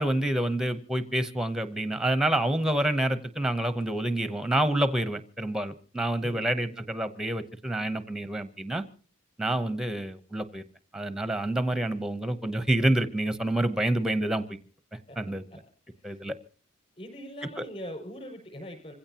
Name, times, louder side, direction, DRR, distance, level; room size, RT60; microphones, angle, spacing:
voice 1, 0.0-8.8 9.4-10.6 10.9-14.6 15.2-15.4 16.0-16.4 17.6-17.7, right 1 dB, 5° right, 11 dB, 0.8 m, -28 dB
voice 2, 6.2-6.8 15.1-15.2 16.1-16.2 17.0-18.9, equal, 30° left, 2 dB, 6.0 m, -42 dB
26.0 x 16.0 x 2.9 m, 0.39 s
head